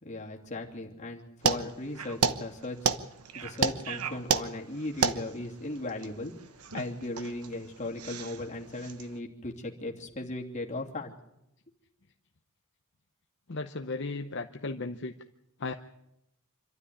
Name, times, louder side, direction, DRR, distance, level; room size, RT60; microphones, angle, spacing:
voice 1, 0.0-2.9 3.3-6.3 6.7-11.1, left 2 dB, 30° left, -1 dB, 2.9 m, -37 dB
sound 1, 1.4-9.1, right 5 dB, 85° right, 1.1 m, -32 dB
voice 2, 13.5-15.1 15.6-15.7, left 3 dB, 55° left, 6 dB, 0.8 m, -35 dB
26.5 x 12.5 x 10.0 m, 0.83 s
head